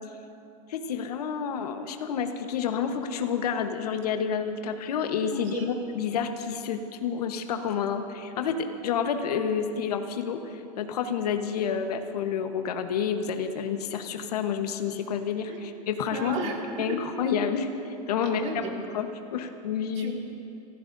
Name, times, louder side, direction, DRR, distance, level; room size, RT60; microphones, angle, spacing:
voice 1, 0.7-16.4 16.8-18.4 18.9-20.1, left 7 dB, 80° left, 6 dB, 1.2 m, -29 dB
voice 2, 16.1-17.0 18.2-18.7 19.9-20.1, right 3 dB, 35° right, -1 dB, 2.4 m, -34 dB
28.5 x 15.0 x 2.7 m, 2.7 s
supercardioid pair, 150°, 20 cm